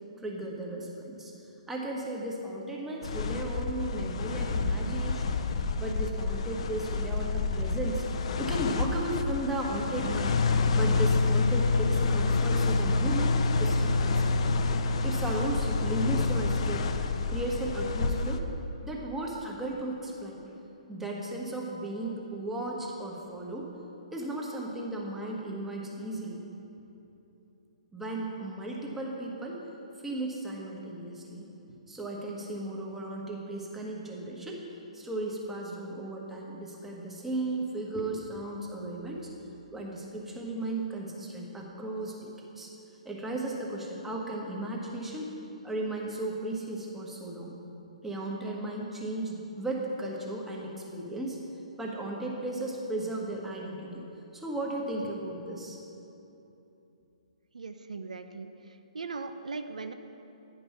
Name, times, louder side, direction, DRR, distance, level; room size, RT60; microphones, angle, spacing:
voice 1, 0.2-1.3 1.7-5.4 5.8-13.3 13.6-14.4 15.0-16.8 17.3-18.4 18.8-20.4 20.9-23.7 24.1-26.4 27.9-29.6 30.0-31.5 31.9-34.6 34.9-39.3 39.7-42.3 42.6-42.7 43.0-45.3 45.6-47.5 48.0-51.4 51.8-54.0 54.3-55.8, right 1 dB, 5° right, -2 dB, 1.2 m, -35 dB
sound 1, 3.0-18.4, left 3 dB, 55° left, 0.5 m, -28 dB
voice 2, 57.5-58.5 58.9-59.9, right 4 dB, 80° right, 8 dB, 0.5 m, -38 dB
9.9 x 5.4 x 5.6 m, 2.9 s
figure-of-eight pair, 130°, 4 cm